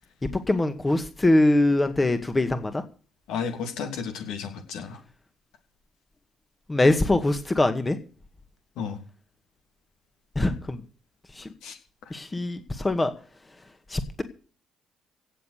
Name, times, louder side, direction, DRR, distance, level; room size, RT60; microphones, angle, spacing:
voice 1, 0.2-2.8 6.7-8.0 10.4-10.8 11.4-11.5 12.1-13.1 13.9-14.2, left 2 dB, 20° left, 9 dB, 2.0 m, -23 dB
voice 2, 3.3-5.0 8.8-9.0 11.6-11.8, left 6 dB, 65° left, 5 dB, 3.0 m, -32 dB
17.0 x 7.5 x 6.7 m, 0.40 s
figure-of-eight pair, 45°, 0 cm